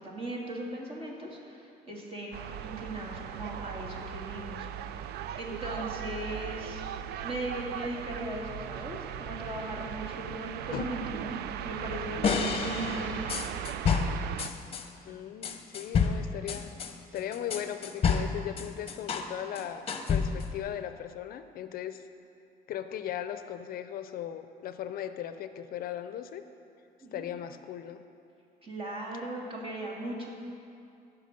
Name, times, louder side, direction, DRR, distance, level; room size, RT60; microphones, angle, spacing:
voice 1, 0.0-4.7 5.1-13.4 27.0-27.3 28.6-30.3, right 1 dB, 35° right, -2 dB, 2.3 m, -38 dB
sound 1, 2.3-14.5, right 10 dB, 75° right, 0.4 m, -38 dB
sound 2, 12.2-14.9 15.4-19.3 19.6-20.6, left 5 dB, 35° left, 0.9 m, -29 dB
voice 2, 15.0-16.7 17.1-22.0 22.7-26.4 27.1-28.0, left 10 dB, 60° left, 10 dB, 0.5 m, -38 dB
16.5 x 5.9 x 5.3 m, 2.6 s
cardioid pair, 110°, 17 cm